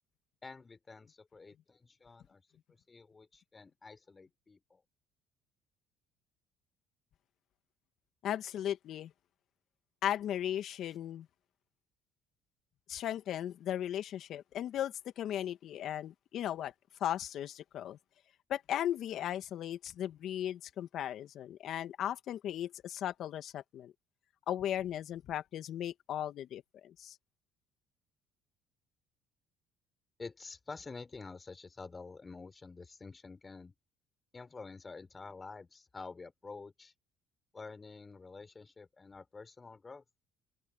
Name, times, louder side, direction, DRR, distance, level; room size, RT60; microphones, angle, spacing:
voice 1, 0.4-2.4 2.9-4.8 30.2-33.7 34.3-36.9 37.5-40.0, left 4 dB, 25° left, 4.1 m, -49 dB
voice 2, 8.2-9.1 10.0-11.3 12.9-16.7 17.0-18.0 18.5-23.9 24.5-27.2, left 11 dB, 60° left, 2.0 m, -37 dB
open air
supercardioid pair, 80°, 0 cm